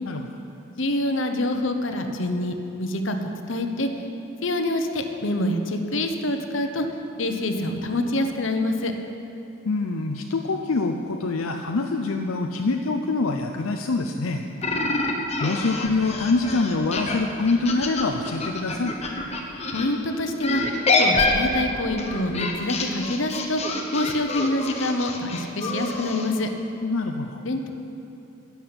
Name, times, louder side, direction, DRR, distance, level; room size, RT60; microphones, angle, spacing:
voice 1, 0.8-3.9 4.4-6.9 7.2-8.9 19.7-20.6 21.0-23.6 23.9-26.5 27.4-27.7, left 1 dB, 60° left, 6 dB, 1.0 m, -26 dB
voice 2, 9.7-14.5 15.4-18.9 26.8-27.4, left 3 dB, 80° left, 3 dB, 0.6 m, -25 dB
sound 1, 14.6-19.9 20.4-26.3, left 3 dB, 30° left, 1.1 m, -26 dB
11.5 x 7.2 x 9.7 m, 2.8 s
head